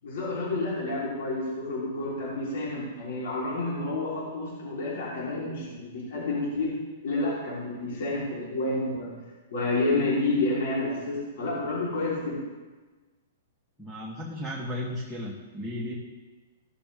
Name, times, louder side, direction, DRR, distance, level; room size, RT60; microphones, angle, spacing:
voice 1, 0.0-6.7 7.0-9.1 9.5-12.4, left 2 dB, 65° left, -6 dB, 3.9 m, -29 dB
voice 2, 13.8-16.0, left 1 dB, ahead, -4 dB, 1.3 m, -35 dB
16.0 x 7.0 x 3.6 m, 1.3 s
hypercardioid pair, 160°, 0 cm